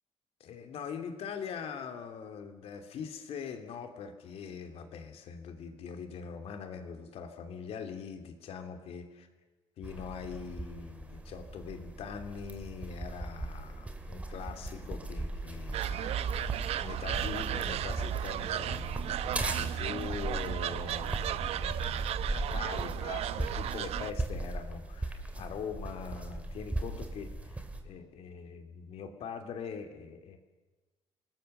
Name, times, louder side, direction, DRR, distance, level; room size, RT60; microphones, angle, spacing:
voice 1, 0.4-9.3 9.8-30.4, left 6 dB, 65° left, 6 dB, 2.8 m, -42 dB
sound 1, 9.8-27.8, right 2 dB, 10° right, 2.4 m, -39 dB
sound 2, 15.7-24.1, right 11 dB, 65° right, 0.8 m, -34 dB
26.0 x 19.5 x 6.7 m, 1.2 s
cardioid pair, 150°, 11 cm